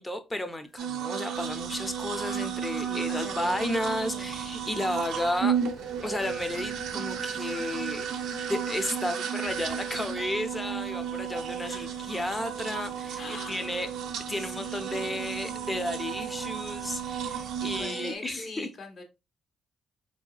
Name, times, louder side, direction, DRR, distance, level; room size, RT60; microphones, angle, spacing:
voice 1, 0.0-5.6 6.0-8.1 8.5-13.9 14.3-18.7, left 1 dB, 15° left, 0.6 m, -33 dB
sound 1, 0.6-17.8, left 3 dB, 80° left, 1.2 m, -49 dB
sound 2, 0.8-18.1, right 8 dB, 85° right, 0.5 m, -33 dB
voice 2, 2.9-4.5 11.6-12.0 13.2-14.0 14.3-15.8 17.6-19.0, left 2 dB, 50° left, 1.0 m, -44 dB
3.9 x 2.7 x 2.3 m
cardioid pair, 90°, 0 cm